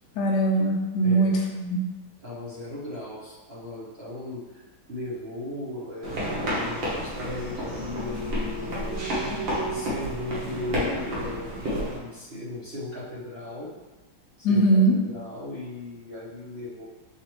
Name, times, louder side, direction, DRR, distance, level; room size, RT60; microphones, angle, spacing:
voice 1, 0.2-1.8 14.4-15.0, right 2 dB, 70° left, 0 dB, 1.1 m, -21 dB
voice 2, 2.2-4.4 4.9-9.1 9.7-13.7 14.4-16.9, left 2 dB, 45° right, -9 dB, 0.9 m, -37 dB
sound 1, 6.0-12.0, equal, 80° right, 1.9 m, -30 dB
6.8 x 2.5 x 3.1 m, 1.2 s
omnidirectional pair, 2.1 m